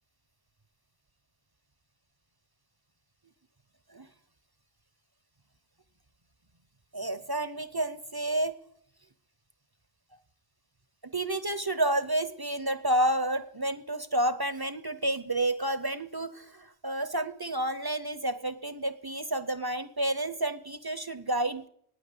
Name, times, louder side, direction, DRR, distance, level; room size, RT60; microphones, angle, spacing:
voice 1, 6.9-8.5 11.0-21.7, right 1 dB, 30° right, 12 dB, 0.5 m, -30 dB
9.5 x 9.1 x 9.6 m, 0.67 s
omnidirectional pair, 1.1 m